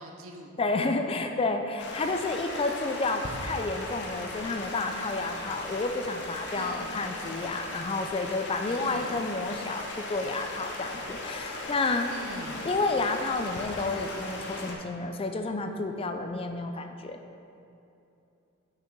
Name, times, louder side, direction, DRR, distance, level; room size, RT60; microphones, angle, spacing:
voice 1, 0.0-0.6 6.5-7.0 8.6-9.2 10.4-10.5 12.1-12.7, right 1 dB, 75° right, 2 dB, 0.8 m, -43 dB
voice 2, 0.6-12.1 12.6-17.2, left 3 dB, 25° left, 6 dB, 0.4 m, -30 dB
Stream, 1.8-14.7, left 2 dB, 55° left, 0.9 m, -38 dB
6.5 x 5.9 x 4.5 m, 2.7 s
head